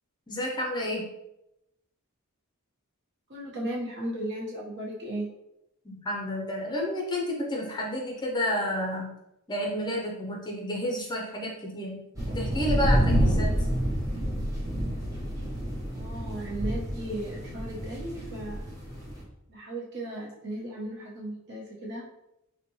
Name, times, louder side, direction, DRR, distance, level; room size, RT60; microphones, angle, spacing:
voice 1, 0.3-1.1 5.8-9.1 9.5-13.6, left 1 dB, 20° left, -1 dB, 0.5 m, -31 dB
voice 2, 3.3-5.3 15.9-18.6 19.5-22.0, right 1 dB, 50° right, -4 dB, 1.0 m, -36 dB
sound 1, 12.2-19.2, equal, 15° right, 0.9 m, -28 dB
4.0 x 2.2 x 3.0 m, 0.87 s
head